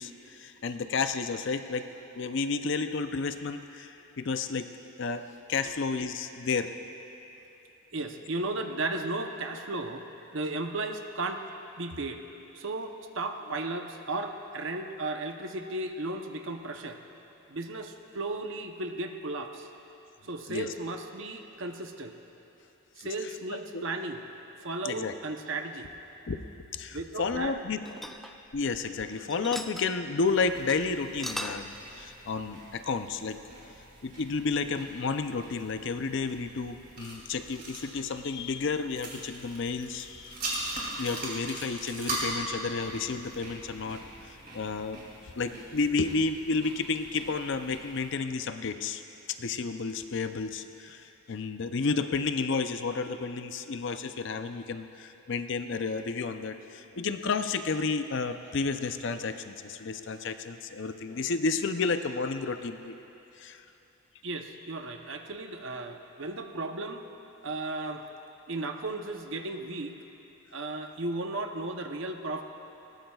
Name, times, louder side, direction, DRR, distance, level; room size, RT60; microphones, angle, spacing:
voice 1, 0.0-1.9 2.2-4.7 5.0-5.2 5.5-6.7 20.5-20.7 23.0-23.1 23.5-23.9 24.8-25.2 26.3-26.4 26.7-27.8 28.5-33.7 34.0-40.3 41.0-45.0 45.4-49.0 49.3-62.9 63.4-63.6, left 4 dB, 55° left, 9 dB, 0.5 m, -31 dB
voice 2, 7.9-10.1 10.3-11.4 11.8-12.2 12.5-17.0 17.5-19.7 20.3-22.2 23.0-24.2 24.6-25.9 26.9-27.6 64.2-67.1 67.4-68.1 68.5-70.0 70.5-72.4, right 2 dB, 60° right, 5 dB, 0.8 m, -35 dB
sound 1, 27.3-29.0 29.3-29.9 30.3-30.4 30.7-30.8 31.1-31.7, equal, ahead, 0.3 m, -39 dB
sound 2, 30.2-48.1, right 1 dB, 40° right, 2.9 m, -41 dB
20.5 x 17.0 x 2.3 m, 3.0 s
head